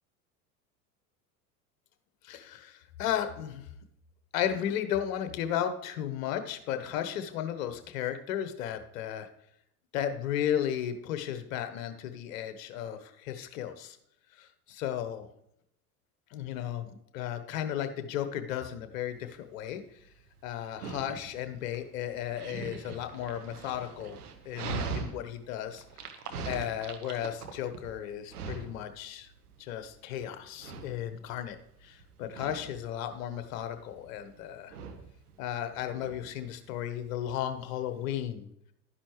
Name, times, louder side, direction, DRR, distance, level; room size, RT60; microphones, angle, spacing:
voice 1, 2.2-3.7 4.3-9.3 9.9-14.0 14.4-15.3 16.3-16.9 17.1-19.8 20.4-24.2 24.4-25.8 26.5-29.3 29.6-31.6 31.8-34.7 35.4-38.5, left 10 dB, 60° left, 9 dB, 1.2 m, -34 dB
Dog, 19.0-38.2, right 5 dB, 75° right, 1.4 m, -43 dB
12.0 x 10.0 x 3.2 m, 0.76 s
figure-of-eight pair, 75°, 46 cm